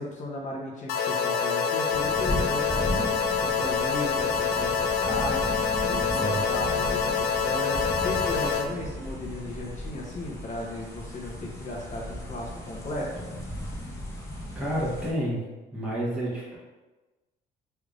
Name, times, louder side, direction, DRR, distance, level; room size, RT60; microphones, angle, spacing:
voice 1, 0.0-13.2, left 1 dB, 45° left, -2 dB, 0.8 m, -35 dB
sound 1, 0.9-8.7, left 6 dB, 70° left, 0.4 m, -26 dB
sound 2, 1.9-15.1, left 1 dB, 15° left, 0.8 m, -36 dB
voice 2, 5.8-6.4 14.5-15.5 15.7-16.6, right 1 dB, 5° right, -8 dB, 1.1 m, -30 dB
3.4 x 3.3 x 2.5 m, 1.2 s
cardioid pair, 110°, 17 cm